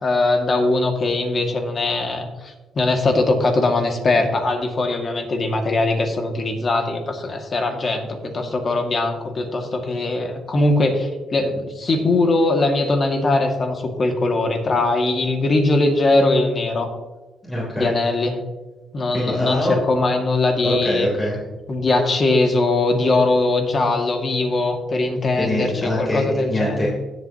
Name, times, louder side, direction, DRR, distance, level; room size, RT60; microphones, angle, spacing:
voice 1, 0.0-16.9 17.8-18.4 18.9-21.1 21.7-26.9, left 2 dB, 40° left, 3 dB, 2.0 m, -21 dB
voice 2, 17.4-18.0 19.1-19.7 20.6-21.4 25.3-26.9, left 1 dB, 20° left, -5 dB, 3.4 m, -23 dB
16.0 x 8.0 x 2.9 m, 1.2 s
cardioid pair, 90°, 0 cm